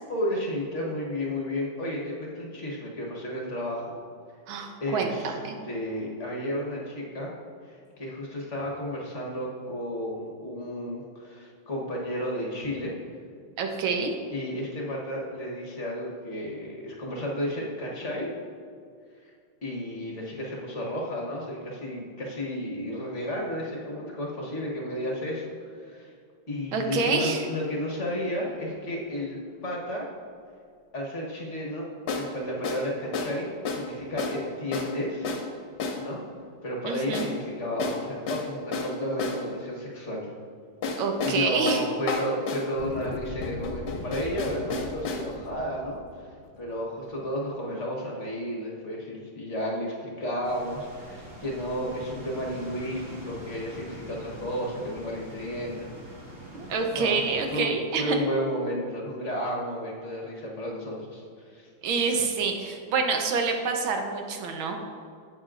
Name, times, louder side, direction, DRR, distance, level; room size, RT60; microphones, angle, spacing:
voice 1, 0.1-4.0 4.8-5.3 5.6-7.3 7.7-12.9 14.3-18.3 19.2-19.3 19.6-26.1 26.5-30.1 30.9-31.9 32.1-35.3 36.0-36.2 36.6-40.3 41.2-46.3 46.6-55.9 56.9-57.2 57.5-61.7, equal, 40° left, -2 dB, 1.4 m, -32 dB
voice 2, 4.5-5.6 13.6-14.1 26.7-27.4 36.8-37.3 41.0-41.8 56.5-58.2 61.8-64.8, right 4 dB, 90° right, 4 dB, 1.7 m, -27 dB
sound 1, 28.1-28.3 32.1-32.3 32.6-32.9 33.1-33.4 33.6-33.9 34.2-34.4 34.7-34.9 35.2-35.5 35.8-36.0 37.1-37.4 37.8-39.4 40.8-42.7 43.4-45.3, left 4 dB, 65° left, 1.5 m, -31 dB
sound 2, 42.7-47.4, left 3 dB, 90° left, 0.6 m, -40 dB
sound 3, 50.4-57.6, equal, 20° right, 2.3 m, -44 dB
12.0 x 7.9 x 2.5 m, 2.2 s
omnidirectional pair, 2.1 m